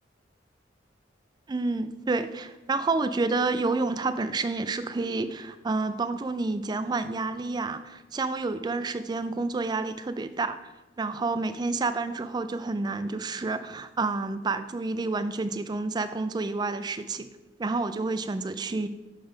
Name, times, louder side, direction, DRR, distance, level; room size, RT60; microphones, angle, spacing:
voice 1, 1.5-10.6 11.0-17.3 17.6-18.9, right 3 dB, 20° right, 11 dB, 0.3 m, -29 dB
6.8 x 4.0 x 5.2 m, 1.1 s
head